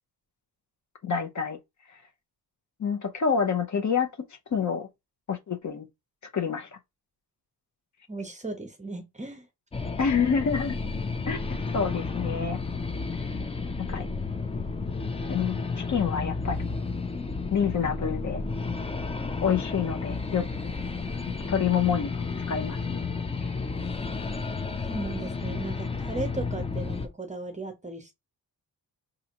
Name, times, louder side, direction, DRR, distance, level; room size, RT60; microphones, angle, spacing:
voice 1, 1.0-1.6 2.8-4.1 4.5-4.9 5.3-5.9 6.3-6.7 10.0-10.8 11.3-12.6 13.8-14.1 15.2-16.7 17.5-18.4 19.4-20.4 21.5-23.0, left 7 dB, 45° left, 0.7 m, -27 dB
voice 2, 8.1-9.5 24.9-28.1, right 3 dB, 20° right, 0.7 m, -36 dB
sound 1, 9.7-27.1, left 4 dB, 15° left, 0.3 m, -32 dB
5.4 x 2.5 x 2.9 m
wide cardioid pair, 170°, 40 cm